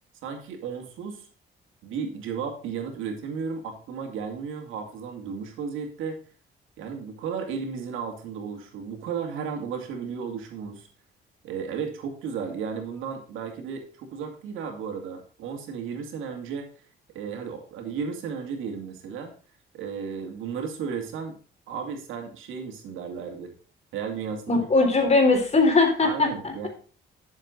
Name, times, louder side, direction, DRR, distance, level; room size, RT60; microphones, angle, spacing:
voice 1, 0.2-1.3 1.8-6.2 6.8-10.9 11.4-16.7 17.1-19.3 19.7-21.4 21.7-23.5 23.9-24.9 26.0-26.7, right 6 dB, 90° right, 4 dB, 2.4 m, -34 dB
voice 2, 24.5-26.7, left 3 dB, 35° left, 4 dB, 3.8 m, -20 dB
11.0 x 7.2 x 3.9 m, 0.40 s
cardioid pair, 90°, 20 cm